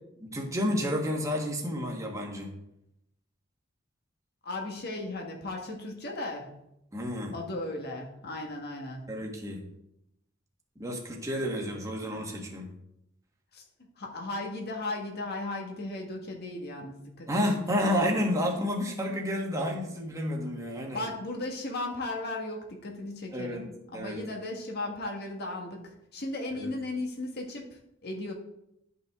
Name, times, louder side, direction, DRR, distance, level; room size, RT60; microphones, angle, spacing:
voice 1, 0.2-2.5 6.9-7.3 9.1-9.6 10.8-12.7 17.3-21.0 23.3-23.6 23.9-24.2 26.5-26.7, equal, 15° right, -1 dB, 1.4 m, -30 dB
voice 2, 4.4-6.6 7.3-9.1 13.5-13.6 14.0-17.3 20.9-28.3, left 2 dB, 55° left, 1 dB, 1.5 m, -36 dB
11.0 x 5.6 x 3.6 m, 0.82 s
head